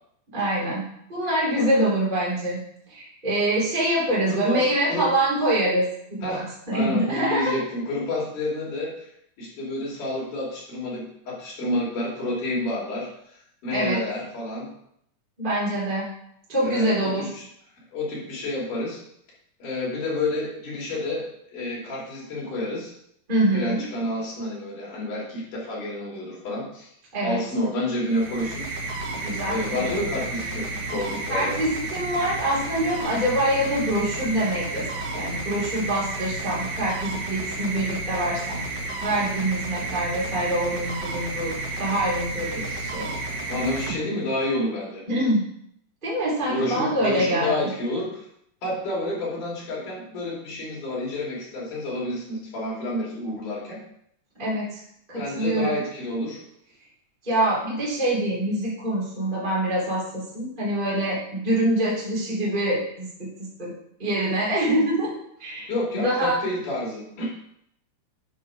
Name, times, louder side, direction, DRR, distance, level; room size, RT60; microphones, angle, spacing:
voice 1, 0.3-2.6 2.9-7.5 13.7-14.0 15.4-16.1 16.5-17.3 23.3-23.8 27.1-27.4 29.2-29.9 31.3-34.8 35.1-38.6 39.0-43.1 45.1-45.4 46.0-47.5 54.4-54.8 55.1-55.8 57.2-63.7 64.0-65.1 65.4-66.4, right 1 dB, 15° right, -8 dB, 3.1 m, -25 dB
voice 2, 1.5-1.9 4.3-5.1 6.2-9.1 9.4-13.1 13.6-14.7 16.6-17.5 17.9-19.0 19.6-22.9 23.5-26.9 27.2-28.7 29.5-31.6 42.6-42.8 43.5-45.1 46.5-48.3 48.6-53.8 55.1-56.4 65.7-67.3, left 1 dB, 80° left, -4 dB, 4.5 m, -29 dB
sound 1, 28.0-44.6, right 2 dB, 70° right, 2.5 m, -32 dB
9.9 x 4.8 x 4.8 m, 0.72 s
omnidirectional pair, 3.6 m